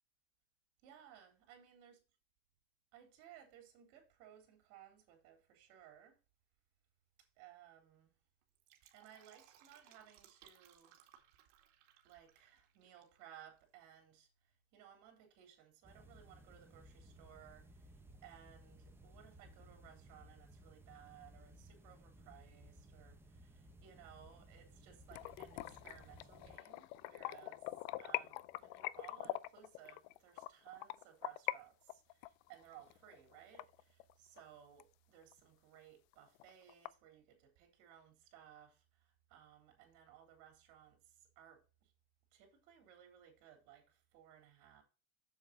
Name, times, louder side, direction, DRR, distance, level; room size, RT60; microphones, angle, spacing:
voice 1, 0.8-2.0 2.9-6.2 7.2-8.2 8.9-11.0 12.0-27.7 28.0-41.9 42.3-44.8, right 10 dB, 60° right, 3.8 m, -60 dB
Fill (with liquid), 8.4-13.2 13.5-13.6, right 11 dB, 75° right, 2.1 m, -66 dB
sound 1, 15.8-26.6, right 1 dB, 5° right, 0.7 m, -60 dB
sound 2, 25.1-31.6 31.9-34.4 34.8-34.9 35.3-35.4 35.8-35.9 36.1-36.9, left 17 dB, 70° left, 0.5 m, -44 dB
7.3 x 7.2 x 4.1 m
cardioid pair, 165°, 34 cm